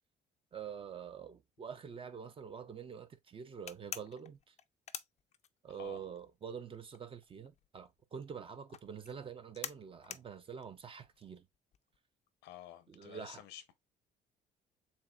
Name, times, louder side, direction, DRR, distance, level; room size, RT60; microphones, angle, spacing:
voice 1, 0.5-4.5 5.6-11.5 12.9-13.4, right 7 dB, 30° right, 0.7 m, -46 dB
sound 1, 3.7-5.9 6.2-12.0, left 9 dB, 40° left, 0.5 m, -47 dB
voice 2, 5.7-6.0 12.4-13.8, left 12 dB, 90° left, 0.8 m, -51 dB
7.2 x 2.7 x 2.4 m
cardioid pair, 110°, 17 cm